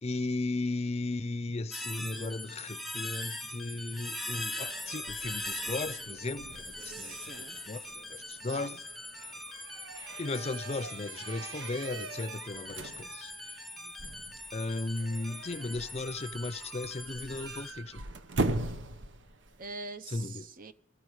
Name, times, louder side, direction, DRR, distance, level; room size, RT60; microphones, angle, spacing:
voice 1, 0.0-7.2 7.7-8.8 9.2-9.3 10.2-13.3 14.5-18.0 20.1-20.5, left 2 dB, 35° left, 0.5 m, -36 dB
sound 1, 1.7-17.7, left 1 dB, ahead, 0.7 m, -41 dB
sound 2, 4.7-19.7, right 2 dB, 90° right, 0.9 m, -41 dB
voice 2, 6.8-7.6 8.5-8.8 13.8-13.9 19.6-20.7, right 3 dB, 50° right, 0.7 m, -44 dB
18.5 x 14.5 x 4.8 m
head